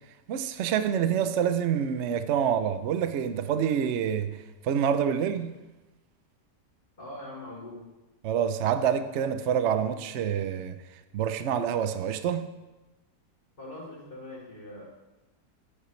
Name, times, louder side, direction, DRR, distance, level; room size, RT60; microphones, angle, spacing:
voice 1, 0.3-4.4 4.6-5.5 8.2-10.8 11.1-12.5, right 8 dB, 65° right, 0.7 m, -27 dB
voice 2, 7.0-7.8 13.6-14.8, left 1 dB, 35° left, 3.7 m, -42 dB
14.5 x 8.6 x 3.1 m
omnidirectional pair, 1.7 m